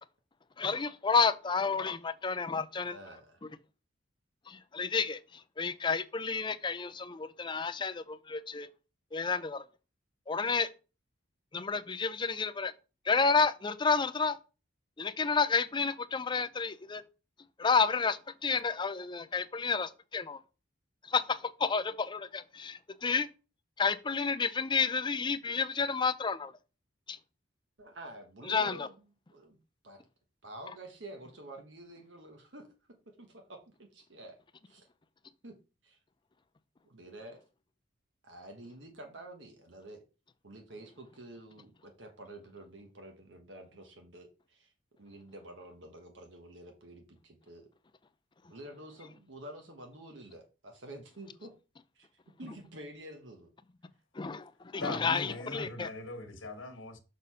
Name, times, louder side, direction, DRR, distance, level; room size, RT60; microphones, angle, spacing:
voice 1, 0.6-3.0 4.5-8.7 9.1-9.7 10.3-10.7 11.5-12.7 13.0-14.4 15.0-17.0 17.6-20.4 21.0-23.3 23.8-26.5 27.1-27.2 28.4-28.9 54.1-55.9, left 5 dB, 25° left, 0.5 m, -30 dB
voice 2, 2.8-3.4 27.8-28.9 29.3-29.6 29.8-30.0 30.4-32.7 33.2-33.6 33.9-34.4 34.7-34.9 35.4-35.6 35.8-36.0 36.8-37.4 38.2-40.0 40.4-44.7 45.0-47.7 48.5-51.5 51.9-52.1 52.4-53.5, right 1 dB, 65° right, 1.2 m, -49 dB
voice 3, 54.8-57.0, left 2 dB, 80° left, 1.5 m, -40 dB
6.3 x 4.1 x 5.6 m
head